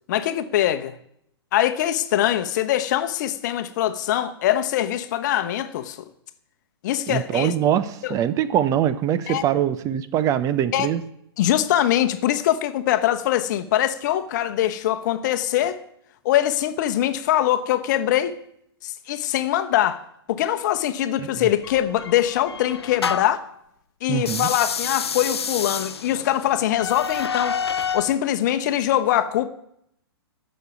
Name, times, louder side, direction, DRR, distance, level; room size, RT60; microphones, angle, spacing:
voice 1, 0.1-0.9 1.5-6.0 6.8-7.5 8.0-8.1 9.3-9.4 10.7-10.9 11.4-15.8 16.2-18.3 18.8-20.0 20.3-23.4 24.0-27.6 27.9-29.5, left 12 dB, 45° left, 1.1 m, -22 dB
voice 2, 7.1-11.0 21.2-21.5 24.1-24.5, right 10 dB, 25° right, 0.8 m, -23 dB
sound 1, 21.6-23.5 24.2-28.1, left 6 dB, 75° left, 0.7 m, -29 dB
15.0 x 6.5 x 9.3 m
figure-of-eight pair, 115°, 13 cm